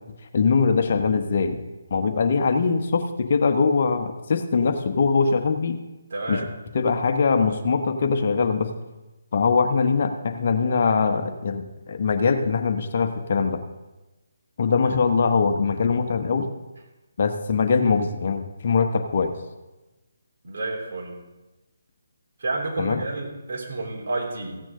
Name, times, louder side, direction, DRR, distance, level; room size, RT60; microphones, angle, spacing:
voice 1, 0.3-1.6 1.9-5.8 6.3-6.5 6.7-8.7 9.3-13.6 14.6-16.5 17.2-19.3 22.8-23.0, left 5 dB, 50° left, 6 dB, 1.1 m, -22 dB
voice 2, 6.1-6.5 20.4-21.2 22.4-24.6, right 2 dB, 55° right, -1 dB, 3.5 m, -30 dB
15.0 x 8.9 x 3.8 m, 1.1 s
figure-of-eight pair, 150°, 0 cm